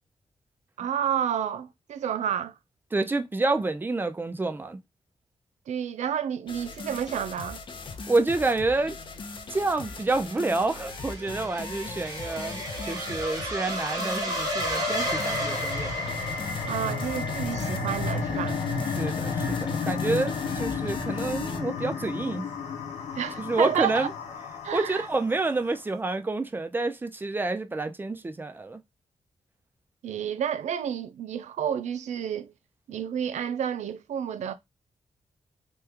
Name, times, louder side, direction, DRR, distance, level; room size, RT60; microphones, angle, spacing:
voice 1, 0.8-2.6 5.7-7.6 16.7-18.6 23.2-24.1 24.6-25.1 30.0-32.5 32.9-34.5, right 9 dB, 85° right, 0.4 m, -30 dB
voice 2, 2.9-4.8 8.1-9.0 9.5-16.1 19.0-22.5 23.4-24.1 24.7-28.8, right 3 dB, 15° right, 0.4 m, -28 dB
sound 1, 6.5-21.6, left 4 dB, 45° left, 0.6 m, -40 dB
sound 2, 9.8-16.9, equal, 35° right, 1.1 m, -33 dB
sound 3, 14.3-25.5, left 4 dB, 90° left, 0.9 m, -32 dB
3.1 x 2.2 x 3.3 m
wide cardioid pair, 125°, 12 cm